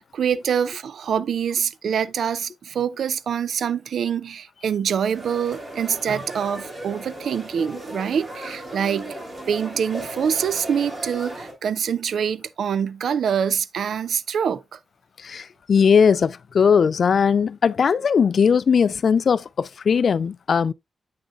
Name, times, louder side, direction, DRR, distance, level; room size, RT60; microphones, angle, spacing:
voice 1, 0.0-9.1 9.5-14.8, right 8 dB, 80° right, 0.4 m, -25 dB
sound 1, 5.1-11.5, right 1 dB, 30° right, 2.9 m, -36 dB
voice 2, 15.2-20.7, left 6 dB, 55° left, 0.3 m, -19 dB
8.4 x 6.3 x 2.3 m
wide cardioid pair, 135°, 0 cm